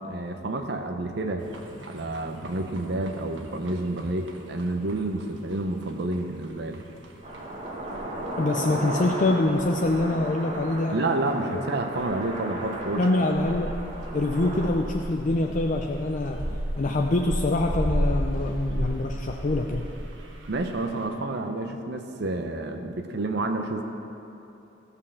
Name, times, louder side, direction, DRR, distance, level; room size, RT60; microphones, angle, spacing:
voice 1, 0.0-1.5 1.8-6.8 10.9-13.1 20.5-23.8, right 2 dB, 65° right, 5 dB, 0.7 m, -29 dB
sound 1, 1.4-21.1, equal, 85° right, 1.2 m, -35 dB
sound 2, 7.2-14.7, right 1 dB, 35° right, 1.4 m, -35 dB
voice 2, 8.4-11.0 11.5-11.6 13.0-13.7 14.1-19.9, left 2 dB, 45° left, 2 dB, 0.5 m, -25 dB
15.0 x 5.5 x 6.9 m, 2.9 s
head